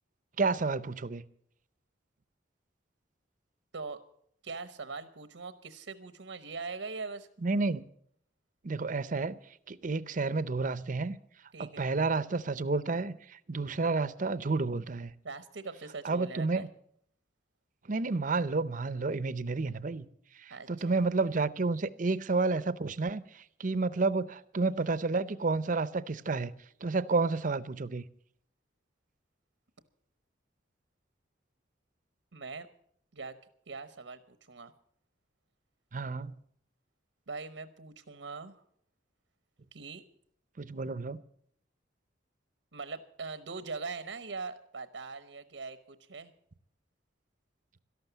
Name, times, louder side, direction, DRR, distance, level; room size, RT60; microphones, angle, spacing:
voice 1, 0.4-1.2 7.4-7.8 8.6-9.4 9.7-11.2 11.6-15.1 16.0-16.7 17.9-20.1 20.4-26.5 26.8-28.0 35.9-36.3 40.6-41.2, right 3 dB, 45° right, 16 dB, 0.6 m, -30 dB
voice 2, 4.4-7.3 11.5-11.9 15.2-16.7 20.5-21.0 32.3-32.7 33.1-33.4 33.7-34.7 37.3-38.6 39.7-40.0 42.7-46.3, right 4 dB, 85° right, 12 dB, 0.9 m, -41 dB
13.0 x 12.0 x 8.1 m, 0.66 s
head